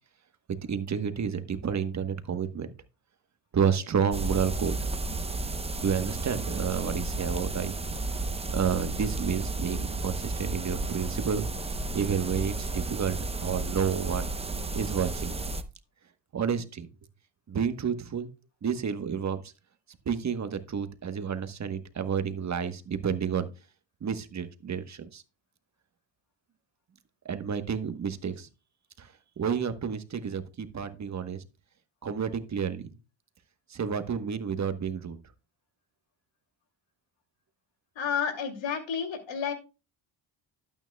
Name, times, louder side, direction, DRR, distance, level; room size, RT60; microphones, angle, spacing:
voice 1, 0.5-2.7 3.5-4.8 5.8-7.7 8.5-11.5 11.9-14.3 14.7-15.4 16.3-16.9 17.5-18.3 18.6-19.4 20.1-23.5 24.0-25.2 27.2-28.5 29.0-29.1 29.4-31.4 32.0-32.8 33.7-35.2, right 7 dB, 35° right, 9 dB, 1.2 m, -30 dB
sound 1, 4.1-15.6, right 2 dB, 15° right, 0.7 m, -33 dB
voice 2, 38.0-39.5, left 7 dB, 65° left, 5 dB, 2.7 m, -30 dB
12.0 x 8.9 x 2.3 m, 0.30 s
cardioid pair, 95°, 48 cm